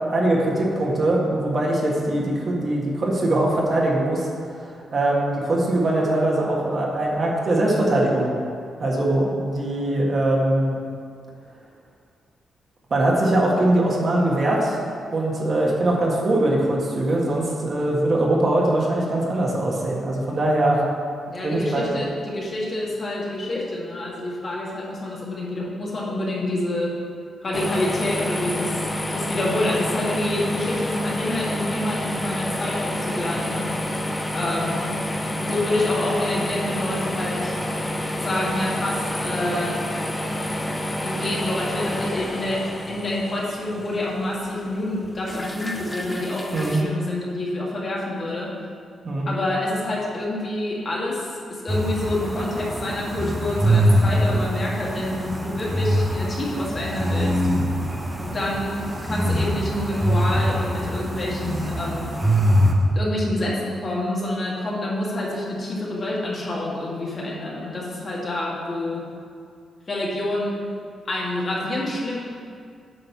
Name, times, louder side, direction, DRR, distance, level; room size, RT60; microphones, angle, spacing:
voice 1, 0.1-8.3 8.8-10.8 12.9-14.8 15.1-20.8 21.4-21.9 46.5-46.8 49.0-49.3, right 1 dB, 45° right, -3 dB, 1.7 m, -22 dB
voice 2, 21.3-26.9 27.4-28.8 29.1-33.7 34.3-34.9 35.4-37.5 38.2-39.8 41.0-48.5 49.3-57.4 58.2-58.7 59.0-62.1 62.9-69.0 69.9-70.6 71.1-72.2, left 1 dB, 40° left, -5 dB, 2.1 m, -27 dB
sound 1, 27.5-46.8, left 1 dB, 15° left, 0.8 m, -29 dB
sound 2, 51.7-62.7, equal, 15° right, 1.1 m, -23 dB
8.8 x 4.2 x 6.9 m, 2.3 s
cardioid pair, 80°, 0 cm